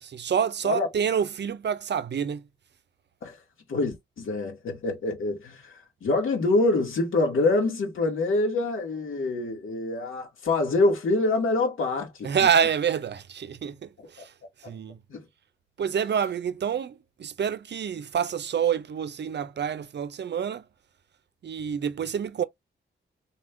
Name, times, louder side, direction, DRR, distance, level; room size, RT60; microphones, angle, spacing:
voice 1, 0.0-2.4 12.2-14.3 14.6-15.0 15.8-20.6 21.4-22.4, right 8 dB, 55° right, 0.6 m, -27 dB
voice 2, 3.7-12.3 14.6-14.7 15.1-15.2, left 2 dB, 75° left, 2.3 m, -25 dB
4.0 x 3.4 x 2.6 m
supercardioid pair, 50°, 21 cm